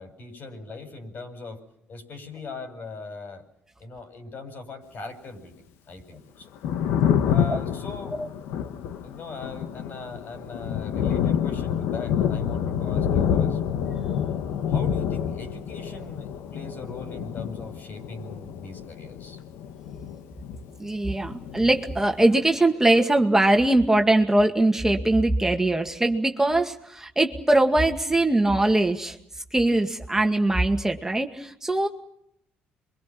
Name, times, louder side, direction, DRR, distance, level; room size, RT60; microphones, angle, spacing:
voice 1, 0.0-1.6 1.9-3.4 3.8-5.6 5.9-6.5 7.2-8.2 9.0-13.6 14.7-19.4, left 3 dB, 55° left, 6 dB, 6.9 m, -40 dB
Thunder, 6.4-20.9 21.1-22.4, left 8 dB, 80° left, 1.4 m, -28 dB
voice 2, 20.8-29.2 29.5-31.9, right 2 dB, 10° right, 3 dB, 2.1 m, -21 dB
28.0 x 23.5 x 6.1 m, 0.76 s
supercardioid pair, 70°, 4 cm